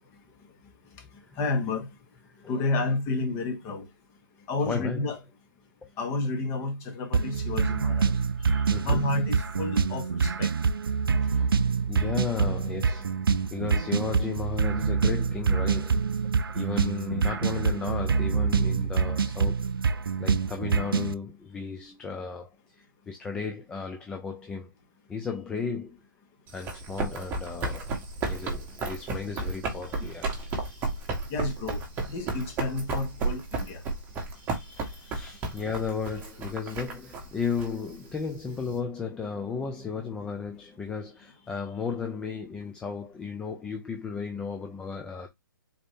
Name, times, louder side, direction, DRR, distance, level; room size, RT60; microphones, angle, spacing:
voice 1, 0.9-1.9 2.5-3.9 4.5-5.2 6.0-8.1 8.8-10.5 31.3-31.8 32.1-33.8, left 3 dB, 25° left, 1.1 m, -30 dB
voice 2, 4.6-5.1 5.8-5.9 8.4-9.1 11.2-11.6 11.9-13.1 13.5-16.1 16.5-22.5 23.1-24.7 25.1-26.0 26.5-27.9 28.3-31.0 34.3-45.3, left 5 dB, 5° left, 0.3 m, -35 dB
sound 1, 7.1-21.1, right 5 dB, 90° right, 0.4 m, -26 dB
Run, 26.5-38.7, right 3 dB, 20° right, 1.2 m, -33 dB
4.0 x 2.6 x 3.3 m
hypercardioid pair, 145°, 11 cm